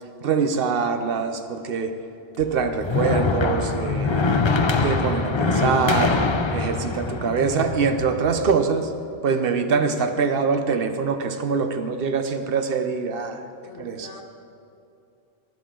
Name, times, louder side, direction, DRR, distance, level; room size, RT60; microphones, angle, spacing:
voice 1, 0.2-2.0 2.4-4.2 4.8-6.2 6.5-8.9 9.2-13.4 13.8-14.1, right 5 dB, 55° right, 8 dB, 0.9 m, -24 dB
sound 1, 2.4-8.5, left 4 dB, 50° left, 0.3 m, -24 dB
voice 2, 9.6-10.0 13.6-14.2, left 3 dB, 70° left, 3 dB, 1.5 m, -41 dB
18.5 x 7.7 x 3.8 m, 2.6 s
omnidirectional pair, 1.3 m